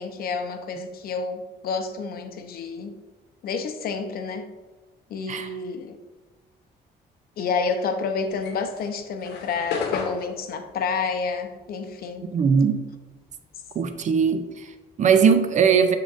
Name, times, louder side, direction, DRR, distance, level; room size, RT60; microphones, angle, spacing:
voice 1, 0.0-2.9 3.4-4.4 5.1-6.0 7.4-12.3, left 5 dB, 60° left, 7 dB, 0.7 m, -29 dB
sound 1, 8.3-13.0 13.3-15.3, left 5 dB, 80° left, 0.9 m, -34 dB
voice 2, 12.3-12.8 13.7-16.0, right 6 dB, 45° right, 9 dB, 0.5 m, -20 dB
9.8 x 3.8 x 2.5 m, 1.2 s
cardioid pair, 120°, 17 cm